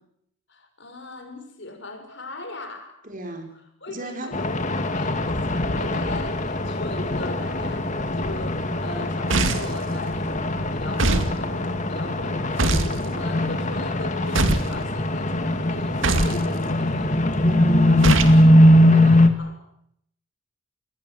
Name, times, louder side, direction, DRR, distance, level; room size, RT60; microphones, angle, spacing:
voice 1, 0.5-3.0 3.8-17.1 19.4-19.6, left 2 dB, 55° left, 6 dB, 6.1 m, -38 dB
voice 2, 3.0-3.6 3.9-4.3 17.4-18.2 18.9-19.2, right 1 dB, 40° right, 5 dB, 4.7 m, -35 dB
sound 1, 4.3-19.3, left 1 dB, 35° left, 2.2 m, -21 dB
sound 2, 9.3-9.8 11.0-11.3 12.6-13.0 14.3-14.7 16.0-16.4 18.0-18.4, right 2 dB, 60° right, 2.3 m, -21 dB
28.0 x 21.0 x 7.9 m, 0.72 s
head